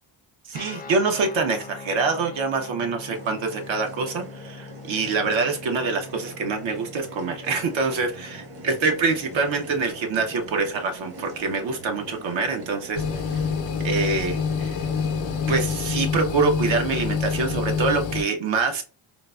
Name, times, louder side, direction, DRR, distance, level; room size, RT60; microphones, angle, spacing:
Guitar, 0.5-10.4, left 5 dB, 20° left, 0.3 m, -43 dB
voice 1, 0.5-13.4 13.8-14.8 15.5-18.8, right 4 dB, 75° right, 5 dB, 0.8 m, -25 dB
sound 1, 3.1-15.7, right 1 dB, 55° right, 1.2 m, -42 dB
sound 2, 13.0-18.2, left 6 dB, 75° left, 0.6 m, -26 dB
3.8 x 2.0 x 2.2 m, 0.33 s
cardioid pair, 110°, 47 cm